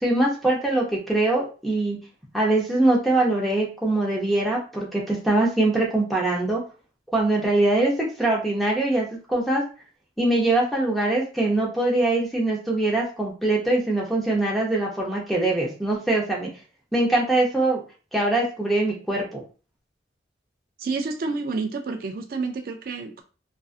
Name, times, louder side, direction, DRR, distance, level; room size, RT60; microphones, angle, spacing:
voice 1, 0.0-2.0 2.3-6.6 7.1-9.6 10.2-16.5 16.9-17.8 18.1-19.4, right 2 dB, ahead, -3 dB, 0.6 m, -23 dB
voice 2, 20.8-23.2, right 4 dB, 50° right, 5 dB, 0.3 m, -29 dB
2.5 x 2.4 x 2.4 m, 0.35 s
head